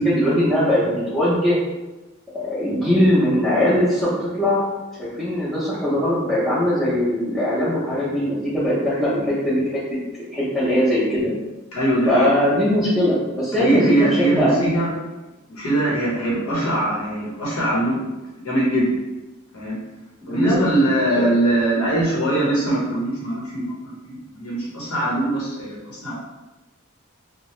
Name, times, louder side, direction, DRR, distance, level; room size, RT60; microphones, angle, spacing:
voice 1, 0.0-1.6 2.3-4.6 5.0-9.6 9.9-10.0 10.3-11.3 12.1-14.7 16.5-16.7 20.2-20.6 21.2-21.3, equal, ahead, -14 dB, 0.6 m, -20 dB
voice 2, 11.7-12.3 13.6-14.9 15.5-18.1 18.4-19.0 19.5-19.7 20.3-23.6 24.0-26.1, right 1 dB, 80° left, -5 dB, 0.8 m, -21 dB
2.8 x 2.0 x 3.0 m, 1.1 s
head